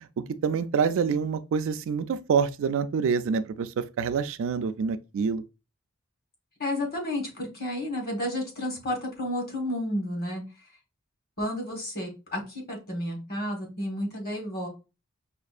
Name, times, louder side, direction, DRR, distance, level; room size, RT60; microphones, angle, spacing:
voice 1, 0.4-5.4, right 6 dB, 65° right, 0.3 m, -26 dB
voice 2, 6.6-10.4 11.4-14.7, left 1 dB, 45° left, 1.4 m, -31 dB
5.1 x 2.4 x 2.4 m
head